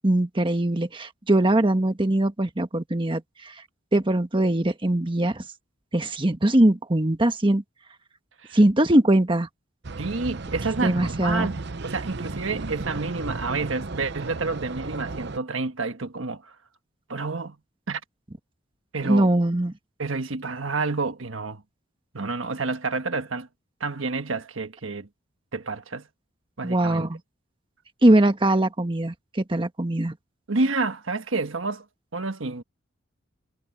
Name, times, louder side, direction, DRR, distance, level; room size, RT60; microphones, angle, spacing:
voice 1, 0.0-3.5 3.9-5.4 5.9-7.6 8.5-9.5 10.8-11.5 19.0-19.7 26.6-27.2 28.0-30.2, right 1 dB, 25° right, 1.4 m, -21 dB
sound 1, 9.8-15.4, right 3 dB, 60° right, 0.8 m, -34 dB
voice 2, 10.0-16.5 17.1-17.6 17.9-18.0 18.9-19.3 20.0-21.6 22.1-23.5 23.8-25.1 25.5-26.1 26.6-27.1 30.5-31.8 32.1-32.6, right 3 dB, 80° right, 1.4 m, -29 dB
head